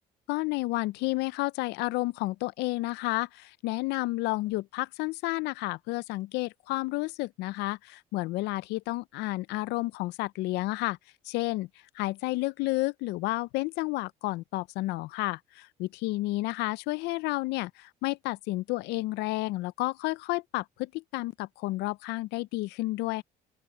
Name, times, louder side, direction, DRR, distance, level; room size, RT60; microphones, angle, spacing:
voice 1, 0.3-11.0 11.3-11.7 11.9-23.2, left 20 dB, 90° left, 0.4 m, -31 dB
open air
cardioid pair, 110°, 17 cm